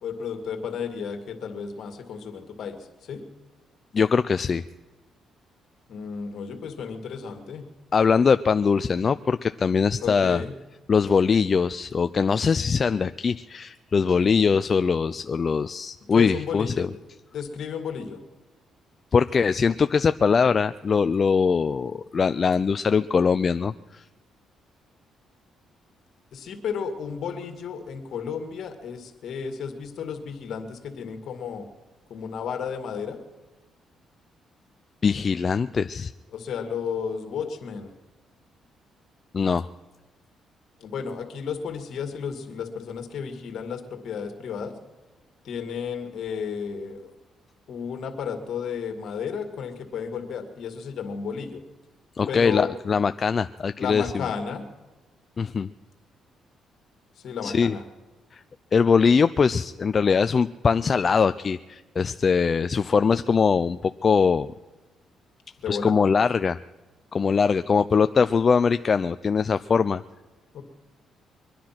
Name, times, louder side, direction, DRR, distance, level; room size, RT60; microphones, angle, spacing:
voice 1, 0.0-3.2 5.9-7.7 10.0-10.5 16.1-16.9 17.3-18.2 26.3-31.7 32.1-33.2 36.3-37.9 40.8-44.7 45.4-47.1 47.7-51.6 52.3-52.7 53.8-54.6 57.2-57.8 65.6-65.9 70.5-70.6, left 6 dB, 65° left, 6 dB, 2.2 m, -33 dB
voice 2, 3.9-4.7 7.9-10.4 10.9-16.9 19.1-24.0 35.0-36.1 39.3-39.7 52.2-54.3 55.4-55.7 57.4-57.8 58.3-58.4 58.7-64.5 65.7-66.6 67.1-70.0, left 5 dB, 40° left, 11 dB, 0.4 m, -22 dB
23.5 x 10.0 x 5.9 m, 1.1 s
cardioid pair, 90°, 0 cm